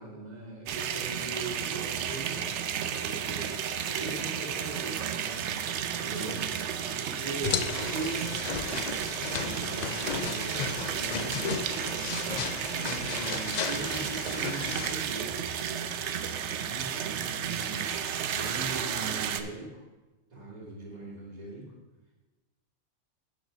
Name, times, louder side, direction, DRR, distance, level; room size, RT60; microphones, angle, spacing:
voice 1, 0.0-2.6 3.0-3.6 3.9-5.4 5.9-6.5 7.0-8.3 9.2-11.6 12.7-15.4 15.8-16.1 16.5-19.8 20.3-21.7, right 3 dB, 35° right, -4 dB, 2.4 m, -40 dB
sound 1, 0.7-19.4, right 8 dB, 70° right, 0.9 m, -33 dB
sound 2, 7.4-14.9, left 7 dB, 60° left, 0.4 m, -35 dB
7.8 x 6.9 x 5.0 m, 1.1 s
omnidirectional pair, 1.3 m